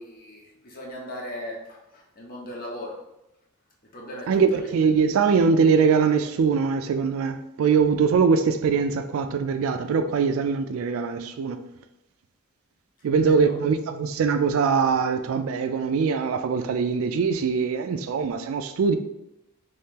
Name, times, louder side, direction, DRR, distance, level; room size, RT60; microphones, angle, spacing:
voice 1, 0.0-3.0 3.9-4.7 13.3-13.6, left 1 dB, 45° left, 0.8 m, -38 dB
voice 2, 4.3-11.6 13.0-19.0, right 5 dB, 80° right, 0.3 m, -22 dB
3.1 x 2.8 x 3.6 m
head